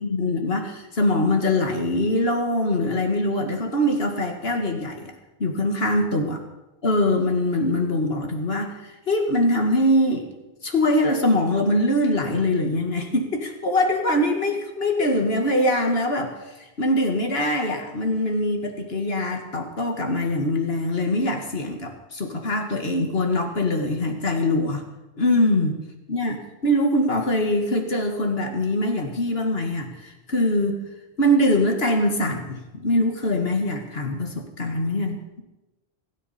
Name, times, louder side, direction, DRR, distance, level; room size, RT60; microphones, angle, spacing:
voice 1, 0.0-5.1 5.4-6.4 6.8-10.3 10.6-24.8 25.2-25.8 26.1-30.8 31.2-35.4, left 1 dB, 75° left, 3 dB, 2.0 m, -23 dB
25.5 x 9.6 x 4.3 m, 1.0 s
omnidirectional pair, 1.1 m